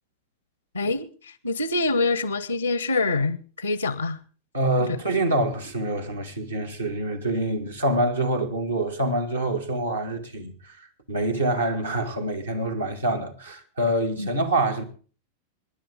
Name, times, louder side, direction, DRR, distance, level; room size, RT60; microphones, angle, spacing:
voice 1, 0.7-4.2 4.8-5.0 14.2-14.3, left 3 dB, 85° left, 0.7 m, -26 dB
voice 2, 4.5-14.8, right 1 dB, 80° right, 1.9 m, -26 dB
25.5 x 10.5 x 3.6 m
figure-of-eight pair, 90°, 0 cm